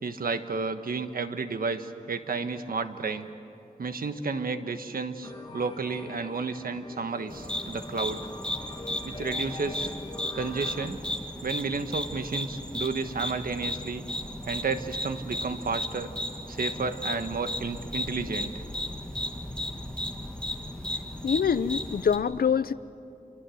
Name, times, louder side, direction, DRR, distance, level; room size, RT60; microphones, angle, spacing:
voice 1, 0.0-3.3 3.8-8.2 9.0-9.9 10.3-11.0 11.4-14.1 14.5-16.1 16.5-18.5, right 4 dB, 80° right, 8 dB, 1.3 m, -32 dB
sound 1, 5.2-10.9, left 2 dB, 30° left, 2.4 m, -44 dB
sound 2, 7.3-22.2, left 1 dB, 5° left, 2.0 m, -35 dB
voice 2, 21.2-22.7, left 7 dB, 85° left, 15 dB, 0.7 m, -25 dB
28.5 x 23.5 x 7.9 m, 2.6 s
wide cardioid pair, 115°, 15 cm